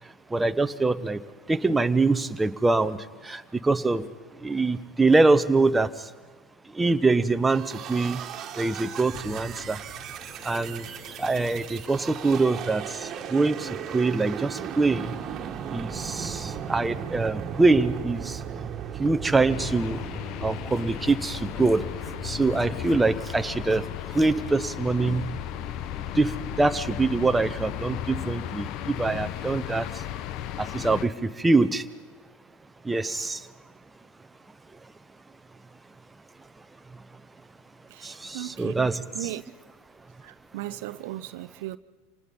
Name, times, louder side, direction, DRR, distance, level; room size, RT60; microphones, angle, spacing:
voice 1, 0.3-1.2 1.5-3.0 3.2-4.1 4.4-5.9 6.7-8.2 8.6-9.8 10.4-10.9 11.2-15.1 15.7-18.4 19.0-20.0 20.4-21.9 22.2-25.2 26.1-29.9 30.6-31.8 32.8-33.4 38.0-39.3, right 3 dB, 10° right, 0.9 m, -24 dB
sound 1, 7.5-24.1, right 8 dB, 40° right, 1.8 m, -37 dB
sound 2, 9.0-16.5, equal, 20° left, 7.8 m, -48 dB
sound 3, 19.5-31.1, left 11 dB, 55° left, 0.8 m, -35 dB
voice 2, 37.9-39.4 40.2-41.8, right 15 dB, 70° right, 0.6 m, -37 dB
26.5 x 19.5 x 5.6 m
hypercardioid pair, 95°, 0 cm